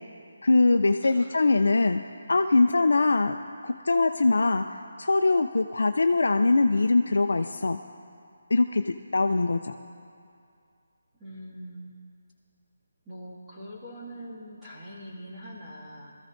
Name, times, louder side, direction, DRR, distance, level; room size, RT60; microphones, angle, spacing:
voice 1, 0.4-2.0 2.3-3.4 3.6-4.6 5.0-7.8 8.5-9.7, left 3 dB, 80° left, 6 dB, 0.4 m, -22 dB
voice 2, 1.0-1.4 2.5-2.6 11.1-11.9 13.0-16.1, equal, 10° right, -10 dB, 2.1 m, -43 dB
22.0 x 14.0 x 2.6 m, 2.4 s
hypercardioid pair, 170°, 0 cm